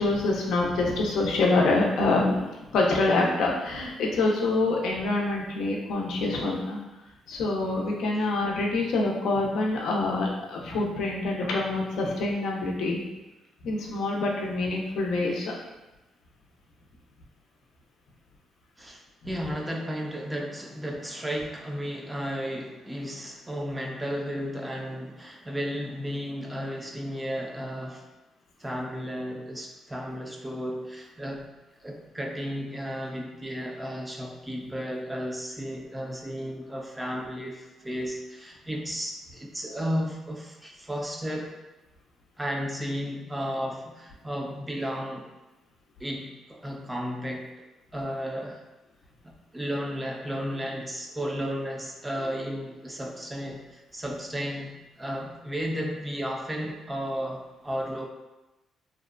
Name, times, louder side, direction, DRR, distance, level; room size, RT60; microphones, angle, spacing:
voice 1, 0.0-6.8 7.3-13.0 13.6-15.5, left 2 dB, 80° left, -2 dB, 0.5 m, -26 dB
voice 2, 18.8-28.1 28.6-31.5 31.8-41.6 42.4-45.3 46.0-47.5 47.9-48.6 49.2-58.1, equal, 10° right, 0 dB, 0.4 m, -33 dB
2.6 x 2.1 x 2.4 m, 1.0 s
cardioid pair, 90°, 0 cm